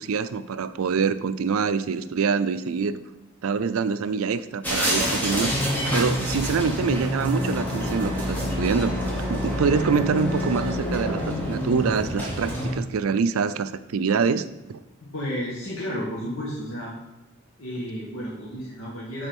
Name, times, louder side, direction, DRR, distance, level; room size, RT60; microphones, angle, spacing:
voice 1, 0.0-3.0 3.4-5.5 5.9-9.0 9.3-14.8, right 5 dB, 80° right, 13 dB, 0.4 m, -25 dB
sound 1, 4.6-12.7, equal, 10° left, 1.4 m, -27 dB
voice 2, 15.0-16.9 17.6-19.3, equal, 75° left, -5 dB, 1.6 m, -32 dB
7.3 x 3.9 x 5.3 m, 1.0 s
head